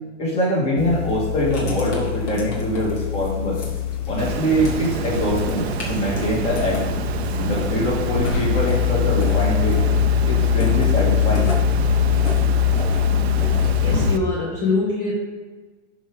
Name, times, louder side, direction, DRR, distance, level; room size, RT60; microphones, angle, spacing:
voice 1, 0.2-3.6 4.1-6.8 7.3-9.8 10.3-11.5, equal, 15° left, -4 dB, 1.9 m, -23 dB
sound 1, 0.8-14.1, left 9 dB, 85° left, 1.0 m, -23 dB
Writing, 1.3-13.9, left 2 dB, 65° left, 3.0 m, -36 dB
Water, 4.2-14.2, right 9 dB, 60° right, 0.6 m, -29 dB
voice 2, 13.8-15.1, left 3 dB, 30° left, -4 dB, 1.4 m, -22 dB
11.0 x 5.0 x 5.2 m, 1.3 s
supercardioid pair, 175°, 36 cm